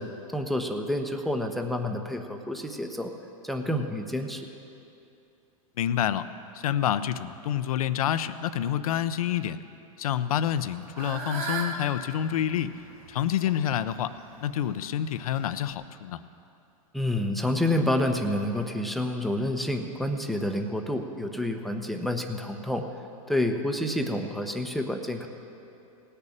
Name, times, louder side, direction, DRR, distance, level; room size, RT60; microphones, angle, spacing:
voice 1, 0.0-3.1 3.4-4.5 16.9-22.9 23.3-25.3, left 1 dB, ahead, 4 dB, 0.9 m, -29 dB
voice 2, 5.8-6.3 6.5-9.6 10.0-12.7 13.1-14.1 14.4-16.2, left 10 dB, 75° left, 13 dB, 0.7 m, -28 dB
Fowl / Bird, 10.4-15.7, right 4 dB, 75° right, 2.7 m, -39 dB
18.0 x 6.8 x 8.7 m, 2.7 s
hypercardioid pair, 125°, 18 cm